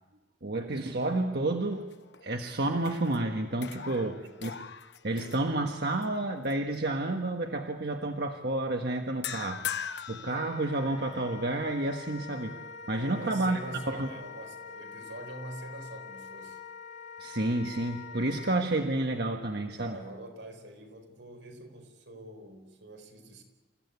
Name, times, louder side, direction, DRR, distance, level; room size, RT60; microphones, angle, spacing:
voice 1, 0.4-1.9 2.2-4.1 4.4-4.5 5.0-12.6 12.9-13.6 13.9-14.1 17.2-20.0, right 2 dB, 60° right, 4 dB, 1.4 m, -30 dB
sound 1, 1.7-2.4 2.8-6.0 6.5-6.7 9.2-11.2, left 8 dB, 65° left, 1.0 m, -41 dB
voice 2, 3.8-4.4 13.0-16.6 19.8-23.4, right 1 dB, 85° right, 5 dB, 4.7 m, -45 dB
Wind instrument woodwind instrument, 10.2-18.6, left 6 dB, 40° left, 1.0 m, -45 dB
28.0 x 16.0 x 9.6 m, 1.2 s
head